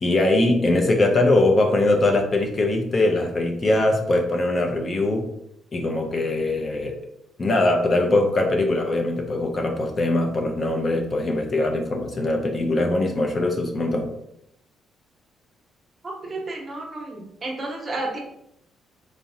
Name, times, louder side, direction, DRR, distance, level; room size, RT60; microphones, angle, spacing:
voice 1, 0.0-5.3 5.7-7.0 7.4-14.1, left 2 dB, 35° left, 2 dB, 0.5 m, -21 dB
voice 2, 16.2-18.2, right 2 dB, 35° right, 0 dB, 0.8 m, -31 dB
3.7 x 2.0 x 2.7 m, 0.78 s
cardioid pair, 90°, 0 cm